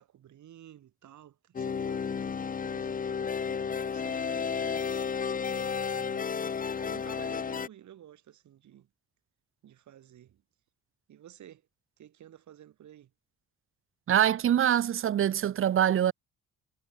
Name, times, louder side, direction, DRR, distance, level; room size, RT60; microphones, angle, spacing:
voice 1, 0.0-2.1 2.6-4.9 5.5-6.5 6.7-8.9 9.6-10.4 11.1-11.6 12.0-13.1, right 11 dB, 70° right, 7.4 m, -53 dB
sound 1, 1.5-7.7, left 6 dB, 30° left, 0.7 m, -32 dB
voice 2, 14.1-16.1, right 10 dB, 45° right, 0.6 m, -24 dB
cardioid pair, 90°, 30 cm